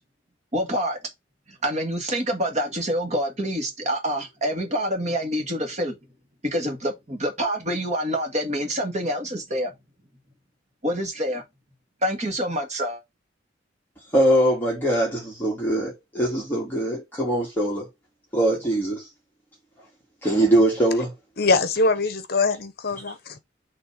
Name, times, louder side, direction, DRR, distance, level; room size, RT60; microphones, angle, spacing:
voice 1, 0.5-1.0 1.5-6.0 6.4-9.7 10.8-11.4 12.0-13.0, equal, 40° right, 2.0 m, -26 dB
voice 2, 14.1-17.9 18.3-19.1 20.2-21.1, right 1 dB, 10° left, 2.0 m, -22 dB
voice 3, 21.4-23.4, left 3 dB, 55° left, 0.9 m, -23 dB
6.8 x 3.4 x 5.0 m
head